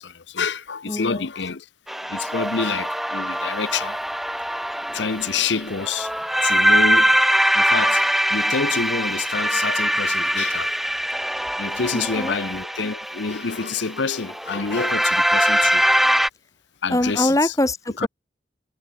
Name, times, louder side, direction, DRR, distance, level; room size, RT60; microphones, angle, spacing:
voice 1, 0.0-1.7 2.1-4.0 4.9-6.1 6.4-7.2 7.5-8.0 8.3-10.7 11.6-15.9 16.8-17.5 18.0-18.1, left 5 dB, 90° left, 0.9 m, -27 dB
voice 2, 0.9-1.2 11.9-12.3 16.9-18.1, left 1 dB, 20° left, 1.2 m, -23 dB
sound 1, 1.9-16.3, equal, ahead, 0.3 m, -22 dB
head